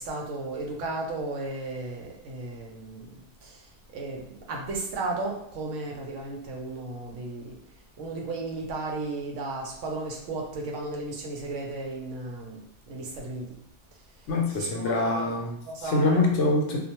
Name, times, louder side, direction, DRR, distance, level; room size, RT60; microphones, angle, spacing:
voice 1, 0.0-3.7 3.9-7.6 8.0-13.5 14.6-15.3 15.6-16.3, right 2 dB, 80° right, 0 dB, 0.9 m, -34 dB
voice 2, 14.3-16.8, left 2 dB, 75° left, 0 dB, 0.9 m, -25 dB
2.4 x 2.1 x 2.8 m, 0.71 s
omnidirectional pair, 1.3 m